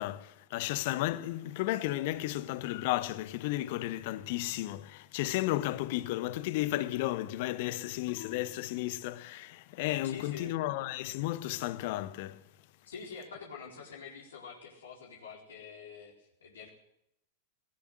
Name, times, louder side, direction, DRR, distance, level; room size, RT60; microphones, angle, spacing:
voice 1, 0.0-12.4, left 16 dB, 50° left, 1.3 m, -33 dB
voice 2, 10.0-10.5 12.9-16.7, left 5 dB, 65° left, 4.3 m, -46 dB
19.0 x 18.5 x 7.8 m
figure-of-eight pair, 90°, 0 cm